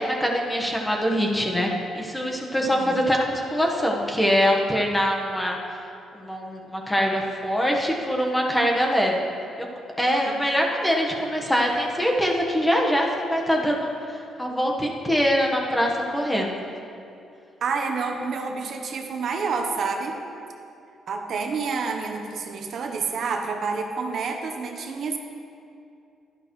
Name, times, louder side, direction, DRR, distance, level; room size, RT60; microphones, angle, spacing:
voice 1, 0.0-5.6 6.1-9.3 9.6-9.7 10.0-16.6, equal, 10° left, -1 dB, 1.3 m, -23 dB
voice 2, 2.7-3.0 10.3-10.4 17.6-20.2 21.1-25.2, right 4 dB, 60° right, 4 dB, 0.9 m, -28 dB
11.5 x 11.0 x 3.2 m, 2.5 s
cardioid pair, 110°, 0 cm